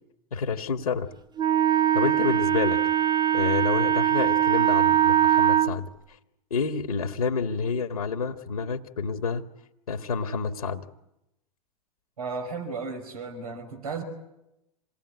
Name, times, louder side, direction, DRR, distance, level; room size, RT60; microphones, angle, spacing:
voice 1, 0.3-1.1 1.9-2.8 3.3-5.9 6.5-9.5 9.9-10.8, left 5 dB, 80° left, 8 dB, 1.5 m, -28 dB
Wind instrument woodwind instrument, 1.4-5.7, right 11 dB, 20° right, 0.9 m, -21 dB
voice 2, 12.2-14.0, right 4 dB, 80° right, 5 dB, 5.2 m, -34 dB
27.5 x 19.0 x 9.7 m, 0.89 s
figure-of-eight pair, 90°, 19 cm